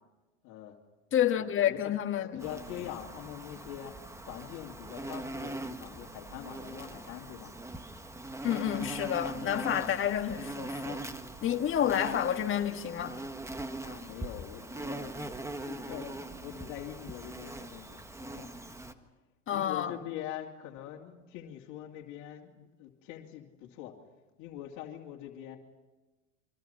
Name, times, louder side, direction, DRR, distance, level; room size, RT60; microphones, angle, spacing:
voice 1, 0.4-0.8 1.7-1.8 2.2-7.5 13.8-15.1 15.6-18.5 19.5-24.0 24.4-25.6, left 11 dB, 50° left, 2.7 m, -43 dB
voice 2, 1.1-2.4 8.4-11.0 11.4-13.2 19.5-19.9, left 10 dB, 35° left, 1.9 m, -29 dB
Insect, 2.4-18.9, right 2 dB, 10° right, 1.5 m, -41 dB
29.5 x 24.0 x 5.8 m
hypercardioid pair, 105°, 37 cm